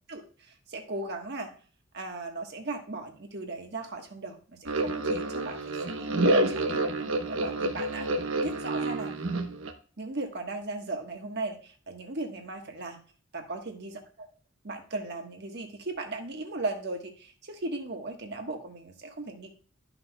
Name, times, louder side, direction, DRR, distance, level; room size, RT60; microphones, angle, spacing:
voice 1, 0.1-1.5 1.9-8.1 8.4-9.1 10.0-13.0 13.3-14.3 14.6-19.5, right 2 dB, 50° right, 3 dB, 1.4 m, -37 dB
sound 1, 4.7-9.7, right 2 dB, 70° right, 1.0 m, -28 dB
12.5 x 6.0 x 2.3 m, 0.41 s
head